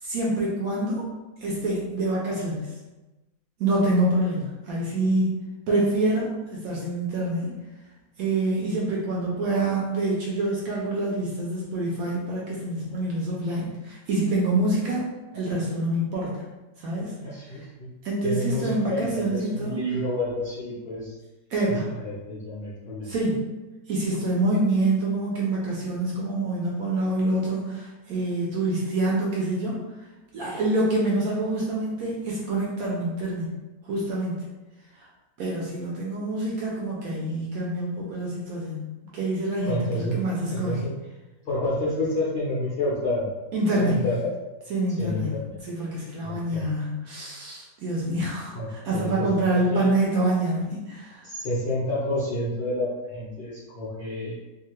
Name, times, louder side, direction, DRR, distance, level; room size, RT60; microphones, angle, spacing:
voice 1, 0.0-1.1 1.4-2.7 3.6-5.3 5.7-7.6 8.2-15.1 15.3-16.4 16.8-17.1 17.5-17.6 18.0-19.8 21.5-21.9 23.0-23.5 23.9-29.8 30.3-33.5 33.8-34.4 35.0-35.1 35.4-38.8 39.1-40.9 43.5-44.0 44.7-45.3 45.7-51.3, right 2 dB, 70° right, -4 dB, 0.9 m, -26 dB
voice 2, 17.2-17.9 18.2-21.1 21.7-21.8 22.0-23.1 39.6-40.2 40.5-40.9 41.4-43.3 43.8-44.3 45.0-45.6 46.2-46.7 48.5-49.3 49.5-49.9 51.2-54.4, left 1 dB, 80° left, -8 dB, 0.5 m, -29 dB
2.7 x 2.4 x 3.0 m, 1.1 s
omnidirectional pair, 1.9 m